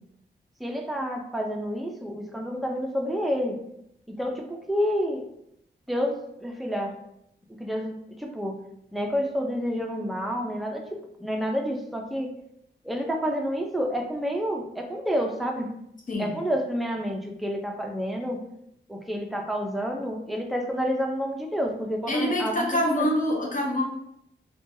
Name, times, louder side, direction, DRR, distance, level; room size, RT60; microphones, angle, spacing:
voice 1, 0.6-3.6 4.1-5.3 5.9-7.0 7.6-8.6 8.9-12.3 12.8-15.7 16.2-18.4 18.9-23.1, equal, ahead, 2 dB, 0.4 m, -29 dB
voice 2, 22.1-23.8, left 1 dB, 45° left, -1 dB, 0.8 m, -25 dB
3.0 x 2.2 x 2.6 m, 0.76 s
cardioid pair, 65°, 19 cm